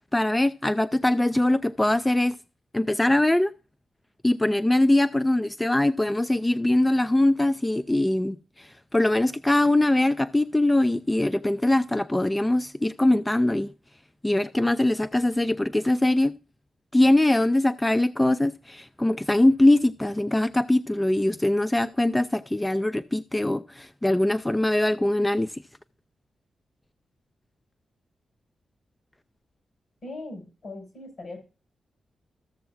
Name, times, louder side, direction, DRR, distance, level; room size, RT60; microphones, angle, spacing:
voice 1, 0.1-2.4 2.7-3.5 4.2-13.7 14.2-16.3 16.9-25.6, left 1 dB, 15° left, 0.3 m, -22 dB
voice 2, 30.0-31.4, left 2 dB, 65° left, 5.1 m, -39 dB
14.5 x 6.8 x 2.4 m
cardioid pair, 85°, 0 cm